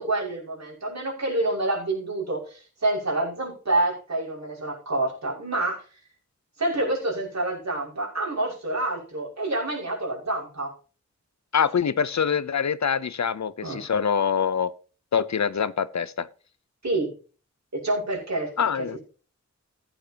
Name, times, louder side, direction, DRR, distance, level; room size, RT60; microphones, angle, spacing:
voice 1, 0.0-5.8 6.6-10.7 13.6-13.9 16.8-17.1 17.7-19.0, right 2 dB, 65° right, 6.0 m, -28 dB
voice 2, 11.5-14.7 15.1-16.3 18.6-19.0, left 7 dB, 70° left, 0.7 m, -24 dB
15.0 x 9.3 x 2.9 m
wide cardioid pair, 75°, 29 cm